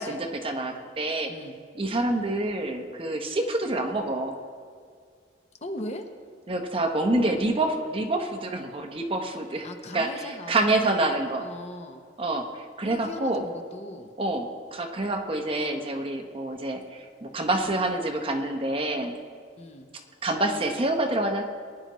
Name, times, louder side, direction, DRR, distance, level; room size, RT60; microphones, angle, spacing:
voice 1, 0.0-1.3 1.7-4.4 6.5-9.7 9.9-11.5 12.2-13.5 14.2-19.1 20.2-21.4, right 2 dB, 30° right, 3 dB, 0.9 m, -27 dB
voice 2, 5.6-6.1 9.6-12.0 12.8-14.1 19.6-19.9, left 1 dB, 35° left, 6 dB, 0.8 m, -40 dB
20.0 x 10.5 x 3.1 m, 2.1 s
head